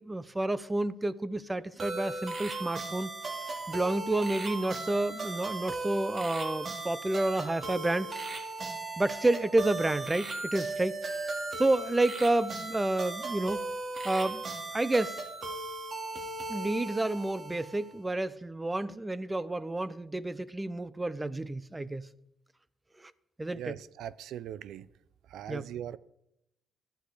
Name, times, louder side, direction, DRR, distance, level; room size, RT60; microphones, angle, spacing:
voice 1, 0.0-3.1 3.7-8.3 9.0-11.2 11.6-13.6 14.0-14.4 14.7-15.2 16.5-22.1 23.0-23.1 23.4-23.8 25.5-25.7, right 2 dB, 15° right, 0.6 m, -30 dB
sound 1, 1.8-18.0, right 3 dB, 45° right, 2.3 m, -37 dB
voice 2, 23.5-24.9 25.3-26.0, right 11 dB, 80° right, 0.4 m, -40 dB
12.0 x 10.5 x 4.9 m
cardioid pair, 90°, 0 cm